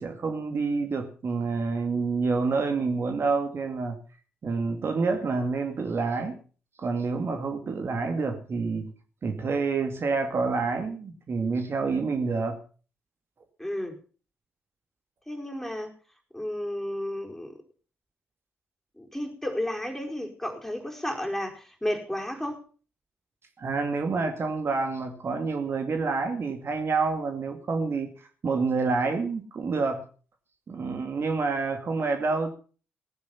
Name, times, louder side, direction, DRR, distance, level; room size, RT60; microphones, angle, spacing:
voice 1, 0.0-4.0 4.4-6.4 6.8-8.9 9.2-12.6 23.6-30.0 30.7-32.5, right 4 dB, 45° right, 5 dB, 2.3 m, -28 dB
voice 2, 13.6-14.0 15.3-15.9 16.3-17.6 19.0-22.6, left 1 dB, 5° left, 3 dB, 4.4 m, -32 dB
18.0 x 9.6 x 5.7 m, 0.39 s
hypercardioid pair, 40°, 6 cm